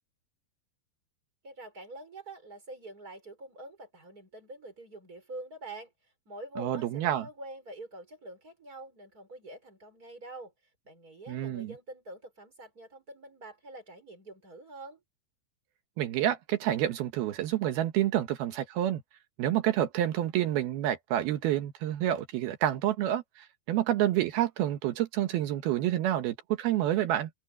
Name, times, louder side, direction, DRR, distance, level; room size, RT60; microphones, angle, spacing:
voice 1, 1.4-5.9 6.3-10.5 10.8-15.0, right 2 dB, 20° right, 5.6 m, -46 dB
voice 2, 6.6-7.3 11.3-11.7 16.0-19.0 19.4-27.3, right 12 dB, 75° right, 3.0 m, -28 dB
open air
omnidirectional pair, 4.5 m